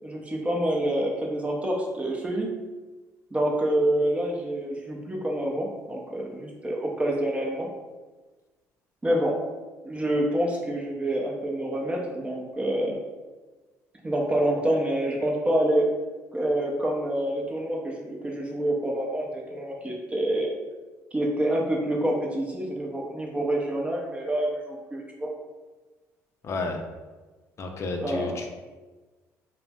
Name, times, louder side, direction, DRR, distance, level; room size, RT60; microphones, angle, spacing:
voice 1, 0.0-2.5 3.3-7.7 9.0-9.4 9.8-13.0 14.0-15.9 16.3-20.5 21.1-25.3 28.0-28.4, right 1 dB, 20° right, -1 dB, 0.6 m, -27 dB
voice 2, 26.4-26.8 27.6-28.5, left 3 dB, 45° left, 3 dB, 0.5 m, -31 dB
2.5 x 2.1 x 3.4 m, 1.3 s
supercardioid pair, 75°, 7 cm